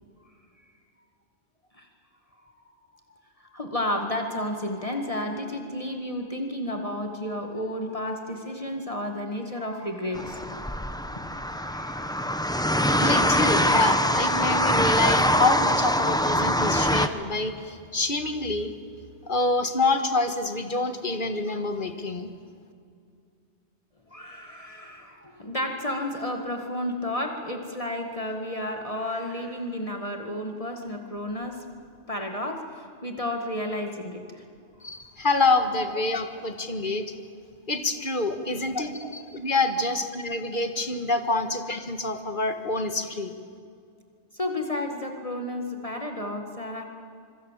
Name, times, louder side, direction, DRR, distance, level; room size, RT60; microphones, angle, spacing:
voice 1, 3.5-10.7 11.5-13.1 24.1-31.7 32.1-34.5 35.8-35.9 36.4-36.5 38.4-38.5 39.0-39.1 41.3-41.5 44.3-46.8, left 1 dB, 30° left, 3 dB, 1.9 m, -32 dB
sound 1, 10.1-17.1, equal, 5° left, 0.9 m, -23 dB
voice 2, 13.0-18.7 19.2-22.3 34.8-37.0 37.7-43.4, left 3 dB, 45° left, 7 dB, 1.9 m, -27 dB
25.5 x 24.5 x 7.5 m, 2.4 s
omnidirectional pair, 1.2 m